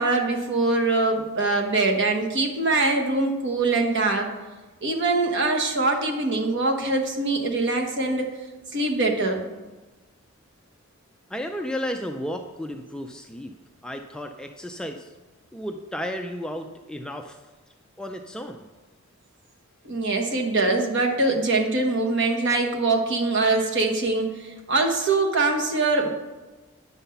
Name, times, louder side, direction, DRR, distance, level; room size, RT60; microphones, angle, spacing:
voice 1, 0.0-4.3 4.8-8.3 8.7-9.4 19.8-26.1, right 3 dB, 55° right, 2 dB, 1.2 m, -23 dB
voice 2, 11.3-13.5 13.8-15.1 15.5-17.4 18.0-18.6, equal, 5° left, 4 dB, 0.3 m, -33 dB
8.9 x 5.7 x 5.6 m, 1.2 s
head